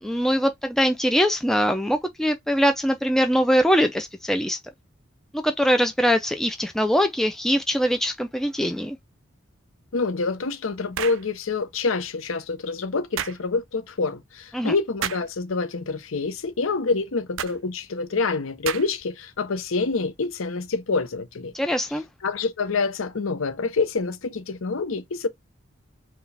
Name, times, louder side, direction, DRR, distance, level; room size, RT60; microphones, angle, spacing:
voice 1, 0.0-4.6 5.3-9.0 14.5-14.7 21.5-22.0, equal, ahead, 0.3 m, -22 dB
voice 2, 9.9-21.5 22.2-25.3, left 4 dB, 90° left, 0.7 m, -27 dB
sound 1, 10.9-11.3 13.2-13.4 15.0-15.3 17.4-17.6 18.7-19.1, right 9 dB, 70° right, 0.4 m, -30 dB
4.7 x 2.3 x 3.2 m
head